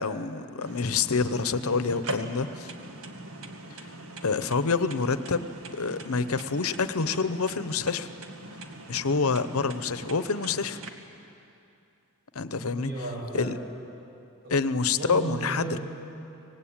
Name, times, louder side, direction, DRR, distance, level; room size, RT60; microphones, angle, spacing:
voice 1, 0.0-2.7 4.2-8.1 8.9-10.8 12.3-12.9 13.3-13.6 14.5-15.8, left 4 dB, 75° left, 12 dB, 0.9 m, -27 dB
sound 1, 0.6-10.9, right 1 dB, 85° right, 1.9 m, -41 dB
voice 2, 12.6-13.6 14.4-15.8, right 2 dB, 45° right, -2 dB, 6.8 m, -35 dB
25.0 x 19.0 x 8.8 m, 2.7 s
head